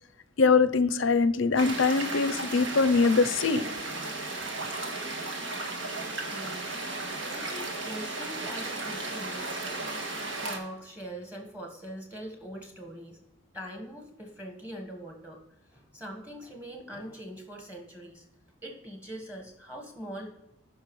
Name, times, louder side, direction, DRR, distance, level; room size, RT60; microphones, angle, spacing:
voice 1, 0.4-3.6, left 4 dB, 70° left, 0.6 m, -23 dB
sound 1, 1.6-10.6, right 2 dB, 65° right, 1.5 m, -35 dB
voice 2, 6.3-9.8 10.2-13.2 13.5-15.4 15.7-18.2 18.6-20.3, equal, 10° right, 1.4 m, -42 dB
14.5 x 5.6 x 3.2 m
head